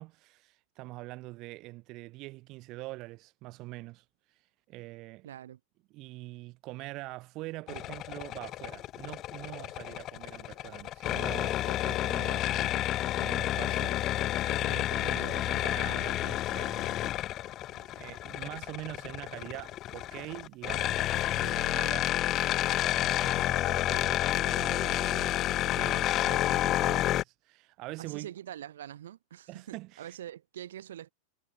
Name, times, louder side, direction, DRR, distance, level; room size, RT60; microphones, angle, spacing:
voice 1, 0.0-4.0 4.7-5.3 5.9-12.8 13.2-17.5 17.7-22.1 22.8-28.3 29.5-30.2, right 20 dB, 45° right, 1.3 m, -44 dB
voice 2, 5.2-5.6 15.0-15.3 28.0-31.1, right 11 dB, 70° right, 3.0 m, -44 dB
sound 1, 7.7-27.2, left 14 dB, 35° left, 0.4 m, -30 dB
figure-of-eight pair, 90°, 0 cm